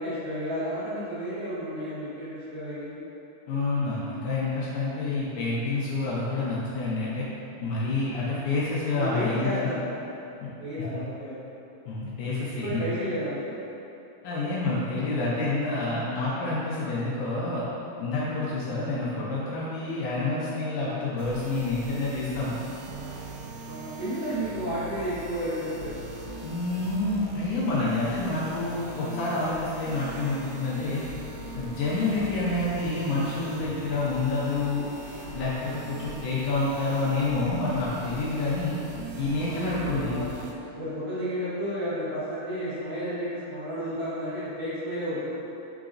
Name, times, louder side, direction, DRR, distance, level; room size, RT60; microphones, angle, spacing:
voice 1, 0.0-3.0 8.9-9.8 10.6-11.4 12.6-13.5 23.6-25.9 39.4-40.3 40.8-45.3, equal, 60° right, -13 dB, 1.8 m, -32 dB
voice 2, 3.5-7.3 7.6-9.7 10.4-10.5 11.9-13.0 14.2-17.7 18.0-22.6 26.4-31.0 31.5-34.9 35.3-38.8 39.2-40.2, left 3 dB, 75° left, -8 dB, 1.8 m, -28 dB
sound 1, 21.2-40.5, right 2 dB, 85° right, 1.6 m, -41 dB
4.9 x 3.8 x 2.5 m, 2.9 s
omnidirectional pair, 3.7 m